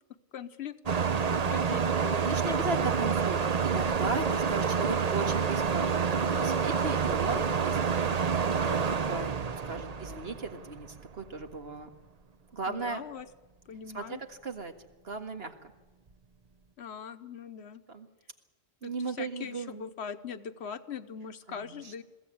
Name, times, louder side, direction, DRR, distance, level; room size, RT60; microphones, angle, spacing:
voice 1, 0.3-2.5 12.7-13.3 13.7-14.2 16.8-17.8 18.8-22.0, left 7 dB, 75° left, 11 dB, 1.2 m, -41 dB
sound 1, 0.9-11.1, right 6 dB, 40° right, 0.8 m, -28 dB
voice 2, 2.3-5.9 6.2-8.8 9.1-9.4 9.6-11.9 12.5-13.0 13.9-14.7 15.0-15.7 17.9-18.1 18.8-19.9 21.5-21.9, right 3 dB, 65° right, 5 dB, 2.0 m, -36 dB
22.0 x 15.5 x 8.6 m, 1.2 s
omnidirectional pair, 1.1 m